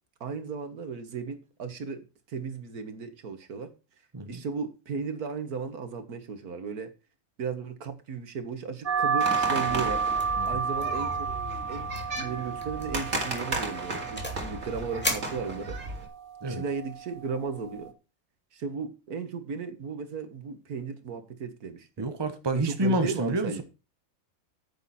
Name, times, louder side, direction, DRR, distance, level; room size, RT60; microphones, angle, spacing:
voice 1, 0.2-3.7 4.3-6.9 7.4-10.0 10.4-11.3 11.7-11.9 12.2-15.8 16.5-17.9 18.5-22.1 22.5-23.6, right 5 dB, 80° right, 1.9 m, -35 dB
sound 1, 8.9-17.9, right 6 dB, 40° right, 1.2 m, -32 dB
sound 2, 9.2-16.1, right 2 dB, 60° right, 2.8 m, -35 dB
sound 3, 10.2-10.5 10.8-11.1 11.3-11.4 11.9-12.2 12.6-12.9 13.4-14.5 15.0-16.0, equal, 5° left, 2.4 m, -35 dB
voice 2, 22.0-23.6, right 1 dB, 20° right, 1.0 m, -28 dB
9.6 x 9.1 x 4.2 m
omnidirectional pair, 1.6 m